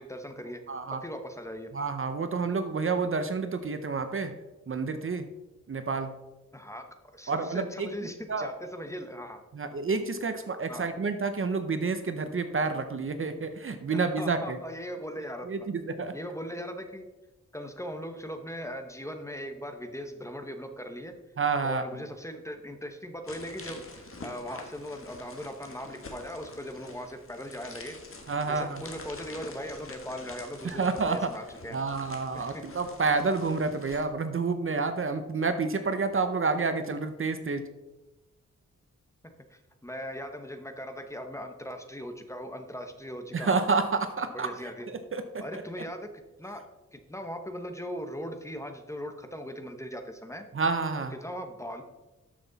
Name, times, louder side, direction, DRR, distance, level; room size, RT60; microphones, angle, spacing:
voice 1, 0.0-0.6 1.0-1.7 6.5-6.9 7.1-9.4 10.7-10.9 13.9-15.5 16.1-17.1 17.5-21.1 21.6-28.0 28.4-31.8 32.3-32.7 39.5-43.6 44.3-44.9 45.4-46.1 46.4-46.6 46.9-50.4 51.2-51.8, equal, 10° left, 6 dB, 1.0 m, -39 dB
voice 2, 0.7-1.0 1.7-4.4 4.7-5.3 5.7-6.1 7.3-7.9 8.3-8.5 9.5-14.6 15.5-16.1 21.4-21.8 28.3-28.8 30.6-31.3 31.7-37.7 43.3-44.5 44.9-45.7 50.5-51.1, right 4 dB, 45° right, 9 dB, 0.7 m, -29 dB
sound 1, 23.3-34.1, left 3 dB, 45° left, 1.6 m, -47 dB
12.5 x 6.1 x 4.0 m, 1.1 s
wide cardioid pair, 120°, 30 cm